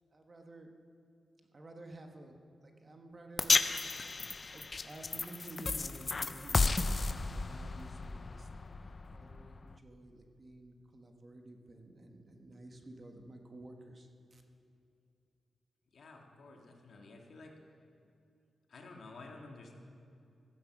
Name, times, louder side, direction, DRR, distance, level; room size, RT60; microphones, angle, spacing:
voice 1, 0.1-0.7 1.5-3.7 4.5-14.4 16.5-16.7, right 2 dB, 30° right, 4 dB, 1.1 m, -52 dB
sound 1, 3.4-9.7, left 3 dB, 30° left, 0.4 m, -33 dB
voice 2, 15.9-17.5 18.7-19.7, left 3 dB, 65° left, 1 dB, 1.8 m, -51 dB
15.0 x 9.2 x 5.9 m, 2.6 s
wide cardioid pair, 145°, 0 cm